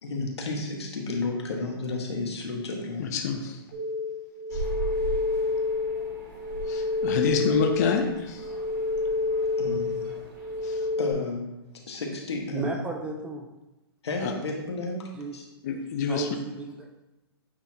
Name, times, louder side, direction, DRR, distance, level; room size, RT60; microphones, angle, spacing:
voice 1, 0.0-3.1 9.6-10.0 11.0-11.5 11.9-12.7 14.0-15.4, left 3 dB, 85° left, 0 dB, 1.6 m, -32 dB
voice 2, 3.0-3.6 4.5-4.6 6.7-8.5 10.6-10.8 14.2-14.3 15.6-16.3, left 5 dB, 40° left, 3 dB, 0.6 m, -27 dB
sound 1, 3.7-11.1, left 3 dB, 25° right, 1.7 m, -29 dB
sound 2, 4.5-11.0, right 2 dB, 45° right, 1.9 m, -39 dB
voice 3, 12.5-13.5 15.2-15.4 16.1-17.0, right 2 dB, 10° right, 2 dB, 0.4 m, -34 dB
8.4 x 4.0 x 2.9 m, 1.0 s
hypercardioid pair, 155°, 14 cm